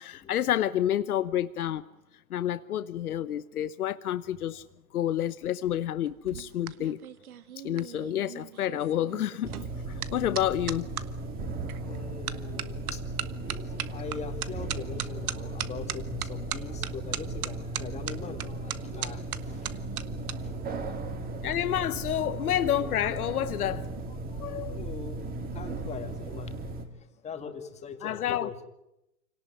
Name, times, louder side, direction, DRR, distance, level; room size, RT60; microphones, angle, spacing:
voice 1, 0.0-1.8 2.3-4.6 4.9-7.0 7.6-9.6 9.9-10.9 21.4-23.8 24.4-24.8 28.0-28.5, left 11 dB, 90° left, 1.0 m, -29 dB
sound 1, 6.1-11.1 11.7-12.0 12.3-20.4 20.6-21.0, right 10 dB, 80° right, 1.5 m, -38 dB
sound 2, 9.4-26.8, right 2 dB, 20° right, 2.3 m, -36 dB
voice 2, 11.8-13.0 13.6-20.0 20.4-20.5 21.7-22.0 24.5-26.5 27.0-28.7, left 6 dB, 15° left, 2.3 m, -42 dB
27.0 x 18.0 x 9.1 m
hypercardioid pair, 145°, 43 cm